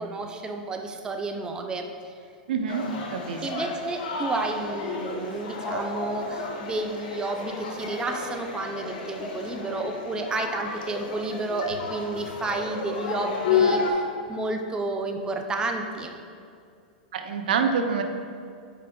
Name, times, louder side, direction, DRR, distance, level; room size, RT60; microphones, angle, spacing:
voice 1, 0.0-1.9 3.4-14.0 14.3-16.1, right 2 dB, 15° right, 5 dB, 0.5 m, -31 dB
voice 2, 2.5-2.8 3.1-3.4 17.1-18.0, right 6 dB, 75° right, 6 dB, 0.5 m, -26 dB
sound 1, 2.7-13.9, left 5 dB, 65° left, 0.9 m, -31 dB
5.9 x 4.6 x 3.6 m, 2.3 s
hypercardioid pair, 110°, 5 cm